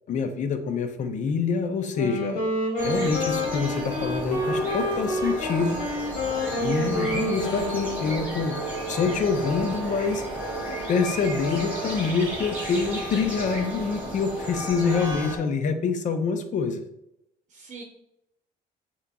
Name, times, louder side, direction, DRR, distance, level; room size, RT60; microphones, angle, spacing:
voice 1, 0.1-2.4 2.8-5.8 6.6-8.6 8.9-10.2 10.9-16.8, left 5 dB, 45° left, 8 dB, 0.6 m, -26 dB
Wind instrument woodwind instrument, 1.8-8.4, left 1 dB, 80° left, 1.6 m, -28 dB
sound 1, 2.8-15.4, right 1 dB, 10° right, 1.4 m, -33 dB
voice 2, 17.5-17.8, right 3 dB, 45° right, 1 dB, 0.8 m, -44 dB
6.4 x 2.9 x 2.3 m, 0.82 s
cardioid pair, 110°, 17 cm